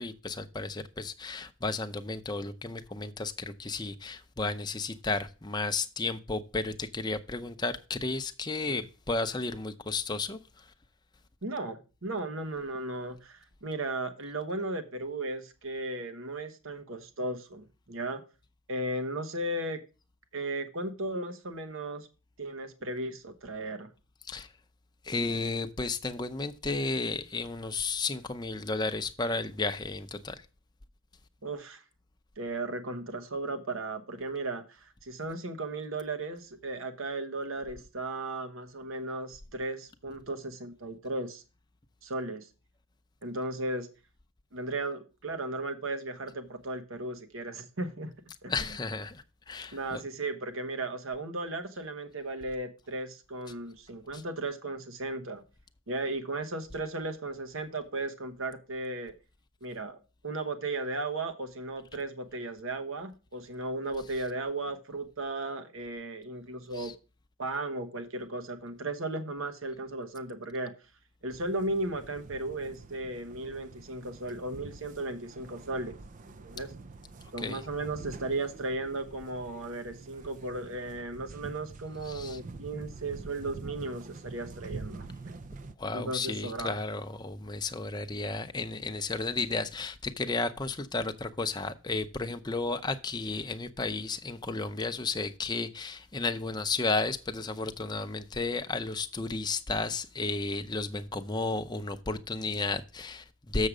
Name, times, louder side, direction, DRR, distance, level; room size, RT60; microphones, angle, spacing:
voice 1, 0.0-10.6 24.3-24.5 25.0-30.5 48.5-50.0 54.1-54.2 66.7-66.9 77.4-77.6 82.1-82.4 85.8-103.7, left 3 dB, 20° left, 0.6 m, -33 dB
voice 2, 11.4-18.2 18.7-19.8 20.3-22.1 22.4-23.9 31.4-31.8 32.4-41.4 42.0-42.5 43.2-43.9 44.5-48.1 48.4-48.5 49.7-55.4 55.9-59.1 59.6-60.0 60.2-66.9 67.4-70.7 71.2-75.9 76.4-76.7 77.3-85.1 85.9-86.8, right 2 dB, 65° right, 1.1 m, -35 dB
sound 1, 71.3-85.7, right 3 dB, 35° right, 0.4 m, -46 dB
7.1 x 6.5 x 4.9 m
head